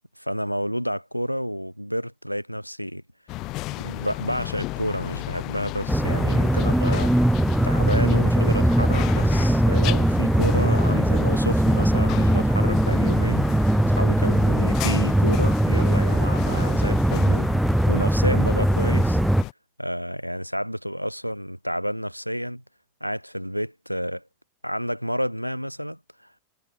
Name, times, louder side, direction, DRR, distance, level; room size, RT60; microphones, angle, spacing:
voice 1, 0.2-3.0 3.8-7.1 7.6-19.2 19.8-22.6 23.0-24.2 24.6-26.0, equal, 90° right, 2.6 m, -30 dB
sound 1, 3.3-19.5, left 20 dB, 40° left, 1.9 m, -34 dB
sound 2, 5.9-19.4, right 1 dB, ahead, 0.4 m, -20 dB
figure-of-eight pair, 90°, 0 cm